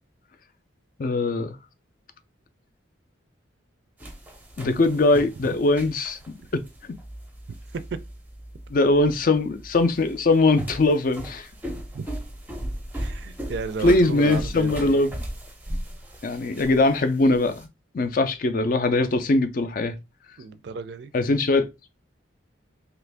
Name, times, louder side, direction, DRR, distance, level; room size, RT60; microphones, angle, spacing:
voice 1, 1.0-1.6 4.6-6.2 8.7-11.5 13.8-15.1 16.2-17.5 17.9-20.0 21.1-21.9, left 2 dB, 45° left, 0.4 m, -21 dB
sound 1, 4.0-17.6, right 1 dB, 10° right, 0.5 m, -37 dB
voice 2, 13.0-15.1 20.4-21.1, right 5 dB, 60° right, 0.4 m, -33 dB
3.0 x 2.5 x 3.4 m
head